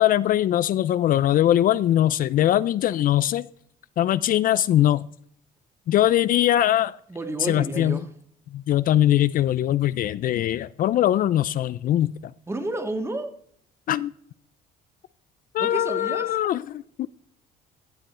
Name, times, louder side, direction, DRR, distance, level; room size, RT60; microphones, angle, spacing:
voice 1, 0.0-3.5 4.0-5.1 5.9-7.0 7.4-8.0 8.5-12.1 13.9-14.1 15.5-17.1, left 12 dB, 55° left, 0.4 m, -21 dB
voice 2, 7.1-8.1 12.5-13.4 15.6-16.4, right 2 dB, 15° right, 1.7 m, -31 dB
15.0 x 7.6 x 4.3 m
cardioid pair, 110°, 17 cm